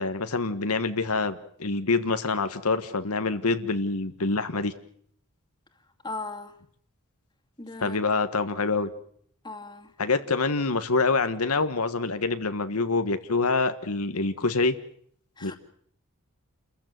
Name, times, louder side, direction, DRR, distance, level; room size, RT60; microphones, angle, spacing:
voice 1, 0.0-4.7 7.8-8.9 10.0-14.7 15.4-15.5, left 3 dB, 80° left, 9 dB, 1.5 m, -26 dB
voice 2, 6.0-6.5 7.6-8.0 9.4-9.9 15.4-15.6, left 3 dB, 20° left, 5 dB, 2.3 m, -37 dB
29.0 x 15.0 x 9.4 m, 0.63 s
head